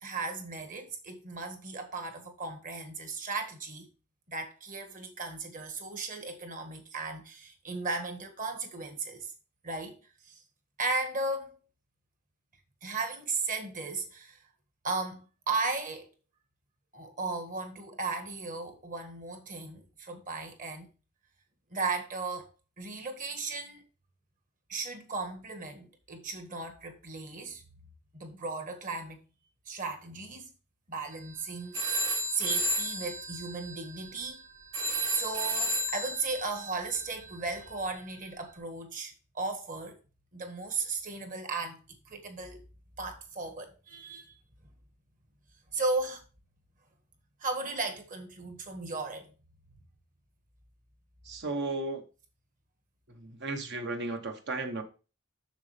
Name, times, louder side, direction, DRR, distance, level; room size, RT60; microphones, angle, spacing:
voice 1, 0.0-3.9 4.3-9.3 9.6-10.0 10.3-10.4 10.8-11.6 12.8-14.4 14.8-16.1 16.9-20.9 21.7-22.5 22.8-23.8 24.7-27.6 28.1-29.2 29.7-30.5 30.9-34.4 35.1-40.0 40.3-41.8 42.1-42.6 43.0-44.3 45.7-46.2 47.4-49.3, right 3 dB, 40° right, 1.6 m, -36 dB
sound 1, 31.1-31.4 31.7-38.4, right 1 dB, 75° right, 2.9 m, -33 dB
voice 2, 51.3-52.0 53.2-54.8, right 2 dB, 55° right, 1.2 m, -34 dB
7.0 x 6.5 x 3.4 m
head